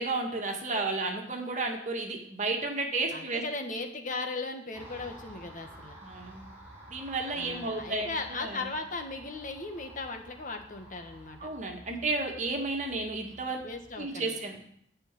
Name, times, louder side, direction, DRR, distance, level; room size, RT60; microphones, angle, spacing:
voice 1, 0.0-3.4 6.0-6.5 6.9-8.2 8.4-8.6 11.4-13.6 14.0-14.7, right 3 dB, 40° right, 2 dB, 1.9 m, -32 dB
voice 2, 3.1-6.0 7.3-11.5 13.6-14.4, left 3 dB, 45° left, 5 dB, 1.5 m, -37 dB
Car passing by, 4.7-14.1, right 1 dB, 10° right, 5.9 m, -51 dB
11.5 x 6.5 x 9.1 m, 0.66 s
head